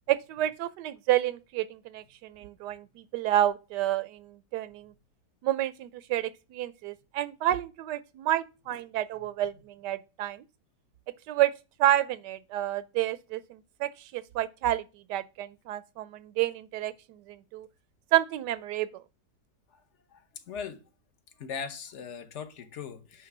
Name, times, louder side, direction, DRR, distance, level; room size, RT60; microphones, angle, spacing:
voice 1, 0.1-4.9 5.4-10.4 11.3-11.5 11.8-14.8 15.1-17.7 18.1-19.0, right 13 dB, 85° right, 1.2 m, -29 dB
voice 2, 20.1-20.8 21.4-23.3, left 6 dB, 50° left, 1.0 m, -40 dB
9.6 x 3.4 x 5.9 m
omnidirectional pair, 1.8 m